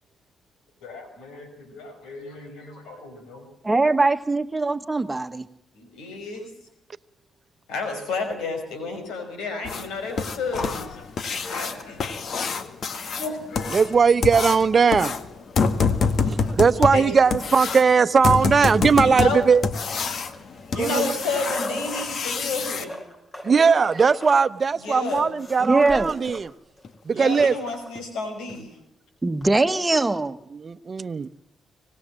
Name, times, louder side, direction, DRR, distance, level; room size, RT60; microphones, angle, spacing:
voice 1, 0.8-3.5 5.7-6.5 7.7-12.0 12.9-13.7 16.8-17.0 19.0-19.4 20.7-23.0 24.8-25.3 27.1-28.7 29.9-30.0, left 3 dB, 85° left, 7 dB, 5.4 m, -31 dB
voice 2, 3.6-5.5 25.6-26.1 29.2-30.4, right 3 dB, 25° right, 9 dB, 1.5 m, -21 dB
sound 1, 9.6-22.8 25.2-25.3 25.7-25.8 26.3-26.4 26.8-26.9 27.4-27.6 27.9-28.0 28.5-28.6, left 5 dB, 60° left, 1.8 m, -27 dB
voice 3, 13.7-15.1 16.0-19.6 20.7-21.1 23.4-26.5 27.0-27.5 30.5-31.3, right 5 dB, 45° right, 13 dB, 1.0 m, -19 dB
sound 2, 20.2-22.1 22.7-26.4 26.8-26.9 27.1-27.9 29.4-29.5, equal, 30° left, 6.2 m, -37 dB
25.0 x 18.5 x 7.6 m, 0.80 s
supercardioid pair, 50°, 0 cm